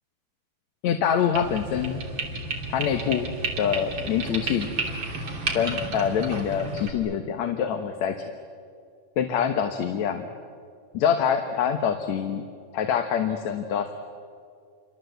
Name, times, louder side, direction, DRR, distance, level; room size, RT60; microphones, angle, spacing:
voice 1, 0.8-2.0 2.7-3.3 3.6-4.7 5.5-8.2 9.2-10.2 10.9-12.4 12.7-13.9, left 8 dB, 70° left, 6 dB, 2.5 m, -25 dB
sound 1, 1.3-6.9, right 3 dB, 40° right, 3.5 m, -32 dB
29.5 x 24.5 x 8.0 m, 2.2 s
omnidirectional pair, 3.3 m